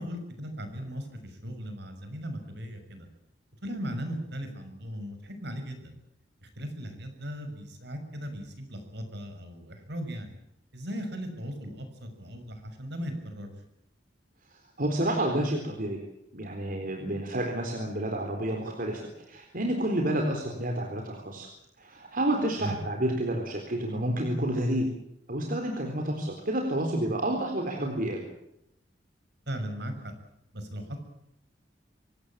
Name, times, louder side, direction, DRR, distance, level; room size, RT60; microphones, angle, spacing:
voice 1, 0.0-3.1 3.6-5.9 6.4-10.3 10.7-13.5 22.6-22.8 29.5-30.1 30.5-31.0, equal, 65° right, 7 dB, 6.2 m, -37 dB
voice 2, 14.5-16.0 16.3-21.5 21.8-24.9 25.3-28.3, right 1 dB, 50° right, 2 dB, 4.0 m, -29 dB
25.5 x 17.5 x 8.7 m, 0.79 s
head